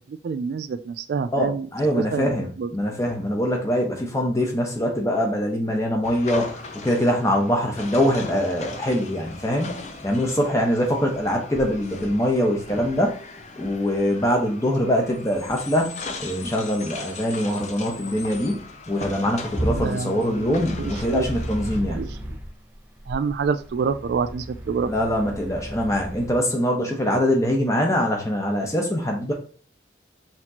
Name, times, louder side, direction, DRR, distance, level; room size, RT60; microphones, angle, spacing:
voice 1, 0.1-1.7 1.9-2.7 19.7-21.3 21.9-22.1 23.1-24.9, right 5 dB, 65° right, 10 dB, 0.3 m, -27 dB
voice 2, 1.3-13.2 13.6-22.0 24.9-29.3, equal, 15° left, 0 dB, 1.0 m, -23 dB
sound 1, 6.0-21.8, left 3 dB, 40° left, 0.6 m, -39 dB
sound 2, 19.6-22.5 23.1-26.3, equal, 10° right, 0.5 m, -33 dB
5.8 x 3.0 x 2.8 m, 0.42 s
head